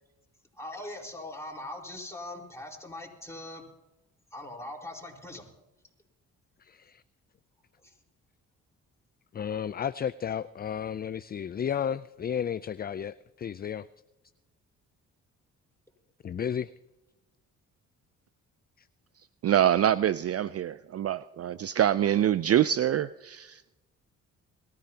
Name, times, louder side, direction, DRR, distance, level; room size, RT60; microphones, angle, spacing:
voice 1, 0.5-3.6 4.3-5.5 7.8-8.0, left 1 dB, 10° left, 4.4 m, -41 dB
voice 2, 6.6-7.0 9.3-13.9 16.2-16.7 18.8-18.9, left 8 dB, 30° left, 0.4 m, -33 dB
voice 3, 19.4-23.8, right 11 dB, 45° right, 0.4 m, -25 dB
22.5 x 14.0 x 2.9 m
supercardioid pair, 55°, 35 cm